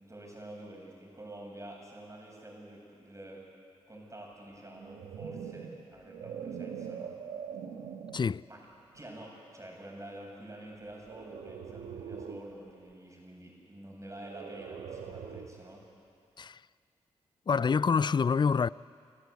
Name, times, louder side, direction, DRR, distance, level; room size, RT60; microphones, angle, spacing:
voice 1, 0.0-3.4 3.9-7.2 8.5-8.7 8.9-15.8, right 1 dB, 25° right, 7.6 m, -48 dB
sound 1, 4.7-8.3 8.9-9.2 11.0-12.5 14.2-15.7, right 7 dB, 90° right, 1.3 m, -43 dB
voice 2, 17.5-18.7, left 5 dB, 40° left, 0.4 m, -26 dB
27.5 x 14.0 x 8.4 m
supercardioid pair, 40°, 12 cm